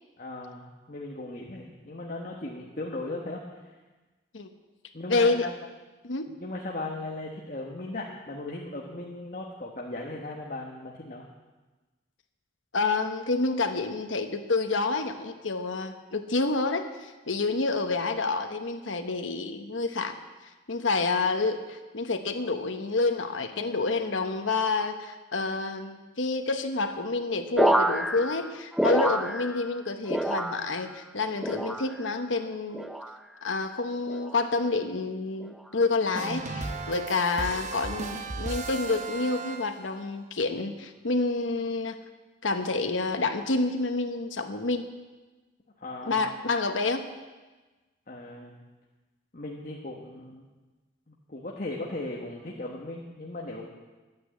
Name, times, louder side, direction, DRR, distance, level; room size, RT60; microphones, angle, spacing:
voice 1, 0.2-3.4 4.9-5.3 6.4-11.2 45.8-46.3 48.1-48.6 49.3-50.5 51.1-53.7, left 2 dB, 45° left, -2 dB, 1.3 m, -37 dB
voice 2, 5.1-5.5 6.0-6.3 12.7-20.1 20.7-32.9 33.4-42.0 42.4-44.9 46.0-47.0, left 3 dB, 80° left, 6 dB, 1.1 m, -28 dB
sound 1, 27.6-29.8 30.1-30.9 31.4-32.1 32.7-33.2 34.1-34.5 35.4-35.7, right 1 dB, ahead, 0.4 m, -28 dB
sound 2, 36.1-40.0, right 3 dB, 35° right, 1.0 m, -35 dB
11.5 x 9.6 x 8.3 m, 1.2 s
head